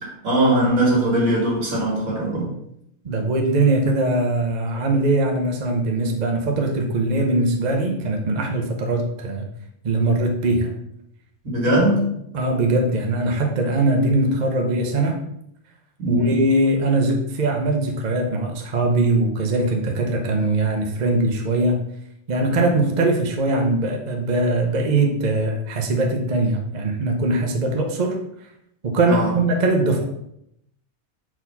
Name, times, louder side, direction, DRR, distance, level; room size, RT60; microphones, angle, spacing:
voice 1, 0.0-2.5 11.4-12.0 16.0-16.4 29.1-29.3, right 1 dB, 75° right, -3 dB, 2.5 m, -20 dB
voice 2, 3.0-9.5 9.8-10.7 11.6-11.8 12.3-15.2 16.1-21.8 22.3-28.2 28.8-30.0, right 2 dB, 40° right, 2 dB, 0.8 m, -21 dB
4.5 x 4.2 x 5.5 m, 0.76 s
omnidirectional pair, 1.4 m